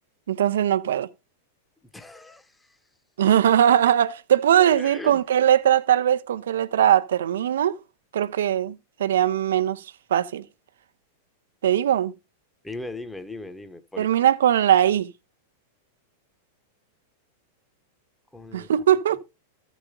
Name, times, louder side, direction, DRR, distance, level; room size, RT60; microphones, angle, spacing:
voice 1, 0.3-1.1 3.2-7.8 8.1-9.8 10.1-10.4 11.6-12.1 14.0-15.1 18.5-19.2, right 10 dB, 70° right, 0.6 m, -20 dB
voice 2, 1.9-2.5 4.8-5.2 12.6-14.1 18.3-18.7, left 2 dB, 5° left, 1.0 m, -38 dB
13.5 x 5.0 x 3.7 m
hypercardioid pair, 100°, 0 cm